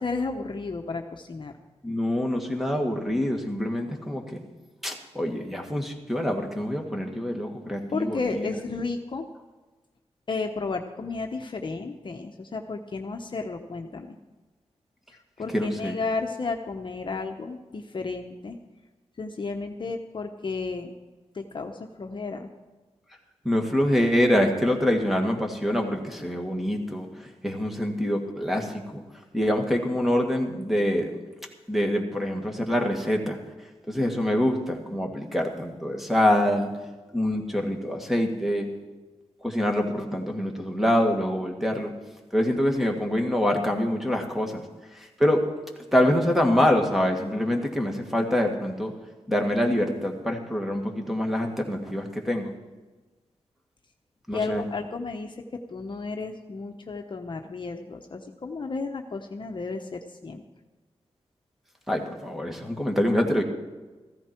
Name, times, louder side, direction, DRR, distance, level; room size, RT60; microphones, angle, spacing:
voice 1, 0.0-1.6 7.9-9.3 10.3-14.1 15.4-18.6 19.2-20.9 21.3-22.5 54.3-55.3 55.7-60.4, left 4 dB, 45° left, 4 dB, 1.0 m, -32 dB
voice 2, 1.8-4.4 4.8-8.5 15.5-16.0 23.4-29.0 29.3-31.1 31.7-33.4 33.9-36.7 37.1-38.7 39.4-41.9 42.3-44.6 44.9-45.4 45.9-48.9 49.3-52.5 54.3-54.6 61.9-63.4, left 1 dB, ahead, 2 dB, 2.1 m, -25 dB
15.0 x 14.0 x 4.5 m, 1.2 s
wide cardioid pair, 90°, 11 cm